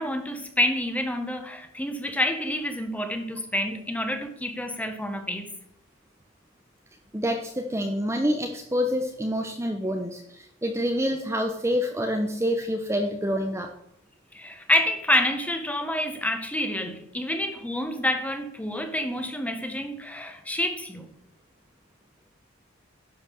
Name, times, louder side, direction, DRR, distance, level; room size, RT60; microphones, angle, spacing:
voice 1, 0.0-5.5 14.3-21.1, left 1 dB, 5° left, 1.3 m, -28 dB
voice 2, 7.1-13.7, equal, 15° right, 0.8 m, -27 dB
11.0 x 5.9 x 6.9 m
head